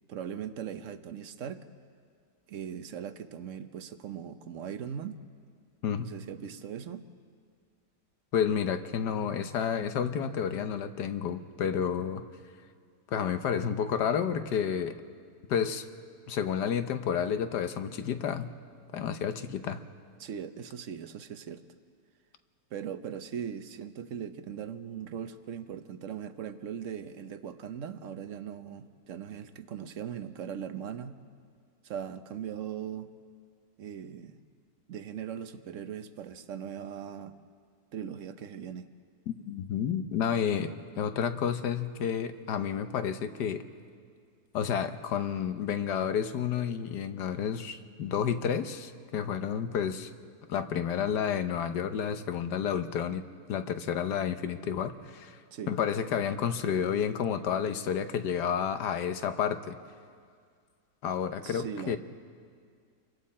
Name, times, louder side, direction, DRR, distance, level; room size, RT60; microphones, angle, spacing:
voice 1, 0.1-1.6 2.5-5.2 6.0-7.1 20.2-21.6 22.7-31.2 31.8-33.1 33.8-34.4 34.9-37.4 37.9-38.9 55.5-55.7 61.4-62.0, right 8 dB, 55° right, 10 dB, 1.0 m, -39 dB
voice 2, 8.3-12.2 13.1-15.0 15.5-15.8 16.3-18.5 18.9-19.8 39.3-43.6 44.5-50.1 50.5-53.2 53.5-55.4 55.7-59.8 61.0-62.0, left 8 dB, 75° left, 9 dB, 1.5 m, -30 dB
28.5 x 23.5 x 4.3 m, 2.1 s
omnidirectional pair, 1.8 m